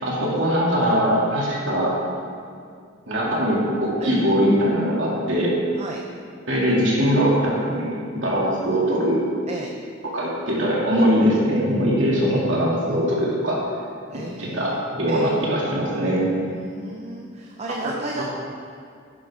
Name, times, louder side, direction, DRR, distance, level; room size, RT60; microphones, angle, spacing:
voice 1, 0.0-1.9 3.1-5.5 6.5-9.2 10.0-13.6 14.4-16.3 17.8-18.2, equal, 75° right, -5 dB, 2.9 m, -21 dB
voice 2, 14.1-15.3 16.5-18.2, right 2 dB, 35° right, 1 dB, 0.7 m, -34 dB
11.0 x 10.5 x 3.8 m, 2.2 s
head